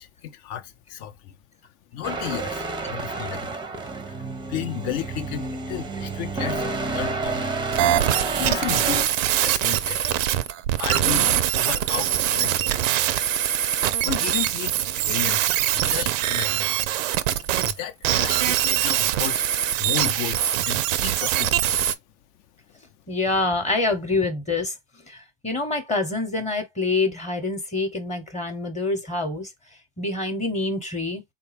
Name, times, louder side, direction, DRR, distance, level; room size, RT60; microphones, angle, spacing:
voice 1, 0.0-1.3 1.9-3.5 4.1-4.2 4.5-6.7 6.9-7.5 8.4-10.2 10.8-13.0 13.7-13.8 14.0-16.8 17.6-21.7, left 11 dB, 55° left, 0.6 m, -33 dB
sound 1, 2.0-9.1, right 3 dB, 10° right, 0.5 m, -29 dB
sound 2, 7.7-17.7 18.0-21.9, right 11 dB, 80° right, 0.5 m, -23 dB
voice 2, 23.1-24.7 25.1-29.5 30.0-31.2, left 3 dB, 20° left, 0.9 m, -26 dB
3.4 x 2.3 x 3.3 m
hypercardioid pair, 95°, 38 cm